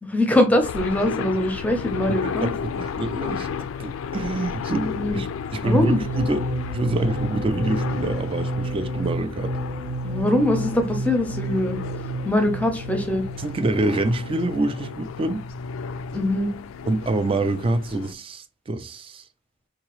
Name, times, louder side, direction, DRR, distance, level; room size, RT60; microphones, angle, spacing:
voice 1, 0.0-2.5 4.9-5.2 5.6-6.0 10.0-11.8 12.2-13.2 16.1-16.5, left 1 dB, 10° left, 0.6 m, -22 dB
sound 1, 0.6-18.1, left 6 dB, 85° left, 0.3 m, -33 dB
voice 2, 2.1-6.4 6.7-9.5 13.4-15.4 16.9-19.2, right 2 dB, 25° right, 0.3 m, -26 dB
sound 2, 5.7-15.3, right 2 dB, 70° right, 0.6 m, -31 dB
3.9 x 2.9 x 3.0 m
head